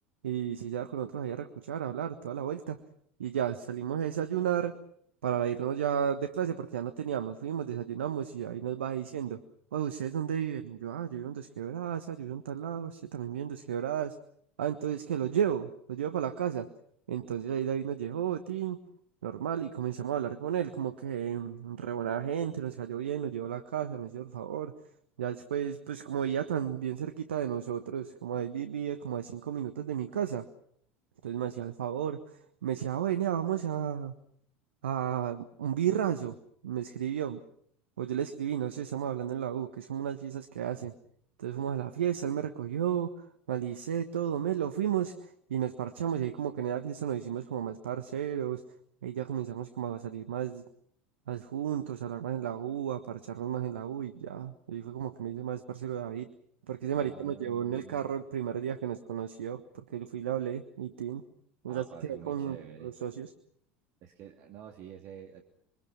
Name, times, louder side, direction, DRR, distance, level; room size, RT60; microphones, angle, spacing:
voice 1, 0.2-2.8 3.2-4.8 5.2-9.4 9.7-14.2 14.6-16.7 17.1-18.8 19.2-24.7 25.2-30.4 31.2-32.2 32.6-34.1 34.8-36.3 36.6-37.4 38.0-40.9 41.4-43.1 43.5-48.6 49.0-50.6 51.3-56.3 56.7-61.2 61.6-63.3, right 9 dB, 75° right, 10 dB, 1.4 m, -33 dB
voice 2, 56.9-58.0 61.7-62.9 64.0-65.4, right 9 dB, 50° right, 4 dB, 2.8 m, -48 dB
27.5 x 23.5 x 6.1 m, 0.65 s
figure-of-eight pair, 75°, 6 cm